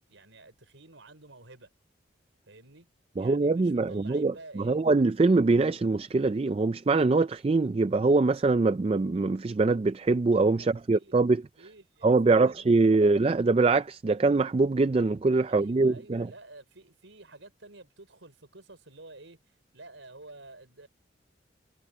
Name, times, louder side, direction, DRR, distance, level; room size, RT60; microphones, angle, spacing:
voice 1, 0.1-1.7 2.5-2.9 3.2-4.8 10.6-11.2 11.6-13.2 15.5-20.9, right 2 dB, 85° right, 5.4 m, -51 dB
voice 2, 3.2-11.4 12.0-16.3, right 3 dB, 30° right, 0.3 m, -23 dB
head